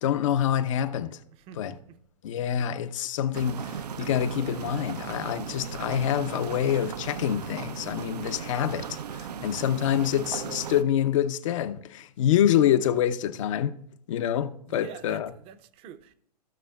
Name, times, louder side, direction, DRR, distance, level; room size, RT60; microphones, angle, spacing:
voice 1, 0.0-1.2 1.6-1.8 2.2-13.8 14.1-15.3, left 10 dB, 50° left, 0.7 m, -26 dB
voice 2, 1.3-2.0 14.7-16.1, right 9 dB, 30° right, 0.6 m, -46 dB
sound 1, 3.3-10.8, right 7 dB, 75° right, 0.5 m, -37 dB
15.5 x 6.2 x 2.3 m
hypercardioid pair, 120°, 21 cm